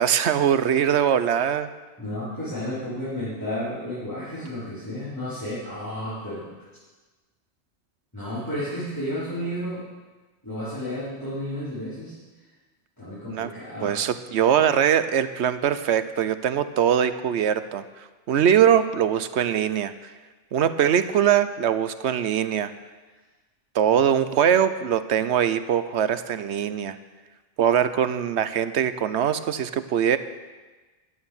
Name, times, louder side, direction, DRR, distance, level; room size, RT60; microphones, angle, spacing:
voice 1, 0.0-1.7 13.3-13.5 13.8-17.8 18.3-19.9 20.5-22.7 23.7-27.0 27.6-30.2, right 9 dB, 75° right, 12 dB, 1.0 m, -22 dB
voice 2, 2.0-6.5 8.1-9.8 10.4-12.1 13.0-13.9, equal, 15° left, -12 dB, 4.6 m, -32 dB
12.0 x 9.6 x 7.1 m, 1.3 s
omnidirectional pair, 1.2 m